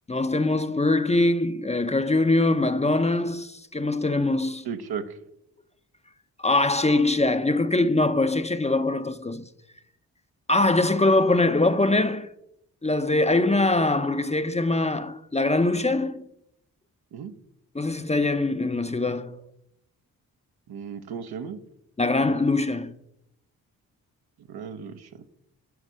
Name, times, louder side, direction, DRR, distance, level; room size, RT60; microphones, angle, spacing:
voice 1, 0.1-4.6 6.4-9.4 10.5-12.3 12.8-16.3 17.7-19.4 22.0-22.9, left 2 dB, 15° left, 0.6 m, -23 dB
voice 2, 4.6-5.2 17.1-17.3 20.7-21.6 24.5-25.2, right 7 dB, 70° right, 0.9 m, -35 dB
9.5 x 4.4 x 6.3 m
supercardioid pair, 45°, 40 cm